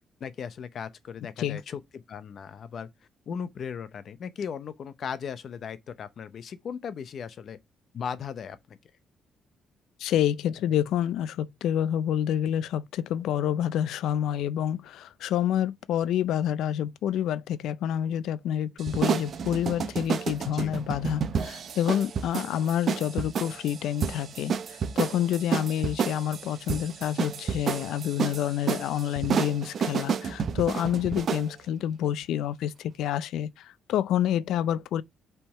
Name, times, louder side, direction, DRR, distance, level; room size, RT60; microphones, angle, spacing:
voice 1, 0.2-2.9 3.3-7.6 7.9-8.8 20.5-20.7 31.1-31.2, left 7 dB, 60° left, 0.7 m, -37 dB
voice 2, 10.0-35.0, left 10 dB, 85° left, 0.4 m, -28 dB
sound 1, 18.8-31.5, right 6 dB, 55° right, 0.6 m, -30 dB
5.6 x 3.5 x 5.4 m
cardioid pair, 90°, 0 cm